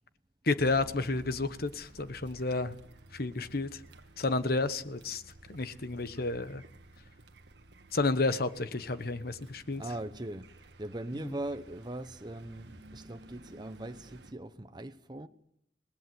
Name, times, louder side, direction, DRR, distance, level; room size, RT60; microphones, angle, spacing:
voice 1, 0.4-2.8 3.1-3.8 4.2-5.2 5.5-6.6 7.9-9.8, left 3 dB, 60° left, 1.1 m, -31 dB
Car, 0.6-14.3, right 2 dB, 75° right, 1.5 m, -54 dB
voice 2, 9.7-10.5 10.8-15.3, right 1 dB, 25° right, 0.9 m, -40 dB
28.0 x 19.0 x 7.9 m
head